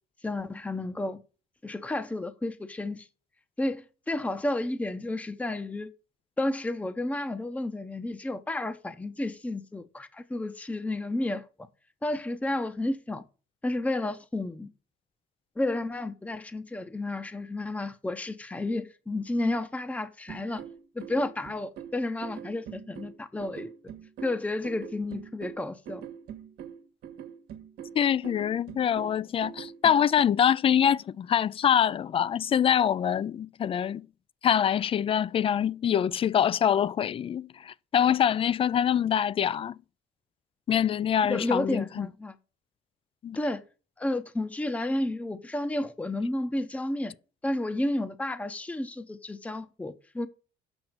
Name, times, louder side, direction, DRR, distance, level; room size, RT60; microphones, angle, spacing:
voice 1, 0.2-1.2 1.6-3.1 3.6-5.9 6.4-11.4 12.0-13.2 13.6-14.7 15.6-20.6 20.9-23.7 24.2-26.0 41.3-42.4 43.3-43.6 44.0-47.1 47.4-50.3, left 2 dB, 10° left, 0.8 m, -31 dB
sound 1, 20.3-30.2, right 9 dB, 70° right, 1.3 m, -43 dB
voice 2, 27.9-34.1 34.4-39.8 40.7-42.1 43.2-43.4, left 9 dB, 35° left, 0.4 m, -25 dB
8.0 x 6.0 x 5.9 m
cardioid pair, 110°, 17 cm